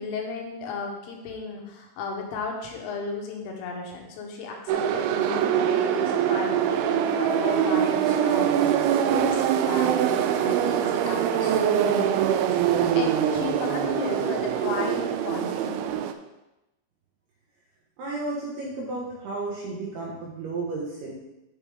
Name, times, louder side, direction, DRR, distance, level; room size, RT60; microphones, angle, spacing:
voice 1, 0.0-12.5 12.9-15.8, left 4 dB, 75° left, 1 dB, 3.5 m, -34 dB
sound 1, 4.7-16.1, right 9 dB, 90° right, 2.7 m, -23 dB
voice 2, 18.0-21.2, right 3 dB, 70° right, -4 dB, 2.6 m, -33 dB
8.6 x 6.9 x 3.4 m, 0.96 s
omnidirectional pair, 6.0 m